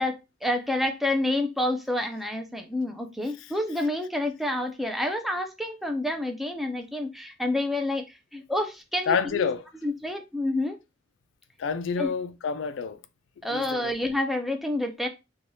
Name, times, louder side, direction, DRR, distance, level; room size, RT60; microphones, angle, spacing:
voice 1, 0.0-9.5 9.8-10.8 12.0-12.1 13.4-15.1, left 1 dB, ahead, 0.4 m, -28 dB
voice 2, 9.1-9.6 11.6-13.0 13.5-13.9, left 6 dB, 75° left, 0.4 m, -28 dB
3.2 x 2.3 x 2.7 m
head